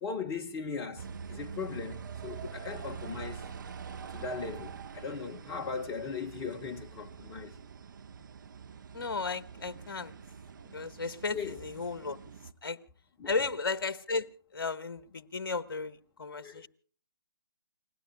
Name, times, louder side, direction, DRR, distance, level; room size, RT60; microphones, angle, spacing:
voice 1, 0.0-3.4 4.1-7.5 11.3-11.6 13.2-13.4 16.4-16.7, left 5 dB, 20° left, 1.2 m, -38 dB
sound 1, 1.0-12.5, right 6 dB, 50° right, 1.2 m, -45 dB
voice 2, 8.9-10.1 10.7-12.2 12.6-12.8 13.2-14.3 14.5-16.7, left 4 dB, 55° left, 1.2 m, -34 dB
29.5 x 20.5 x 2.2 m
figure-of-eight pair, 140°, 13 cm